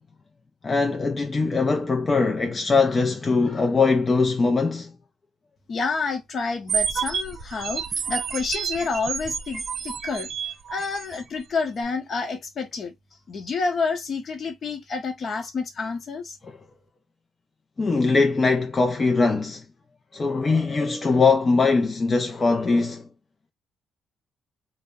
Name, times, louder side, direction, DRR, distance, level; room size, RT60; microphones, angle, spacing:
voice 1, 0.6-4.9 16.5-16.6 17.8-19.6 20.1-23.1, left 4 dB, 30° left, 0.4 m, -21 dB
voice 2, 5.7-10.3 10.7-12.9 13.3-16.4, left 4 dB, 50° left, 0.8 m, -29 dB
sound 1, 6.7-11.2, right 7 dB, 55° right, 0.4 m, -29 dB
2.1 x 2.0 x 3.5 m
cardioid pair, 90°, 0 cm